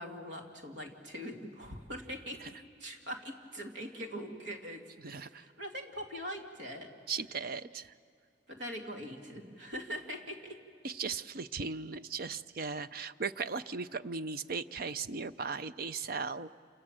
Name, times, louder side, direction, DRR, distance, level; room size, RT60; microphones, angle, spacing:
voice 1, 0.0-6.9 8.5-10.6, equal, 65° right, 3 dB, 2.6 m, -42 dB
voice 2, 5.0-5.4 7.1-7.9 10.8-16.5, right 5 dB, 50° right, 13 dB, 0.6 m, -37 dB
28.5 x 27.5 x 7.6 m, 2.5 s
head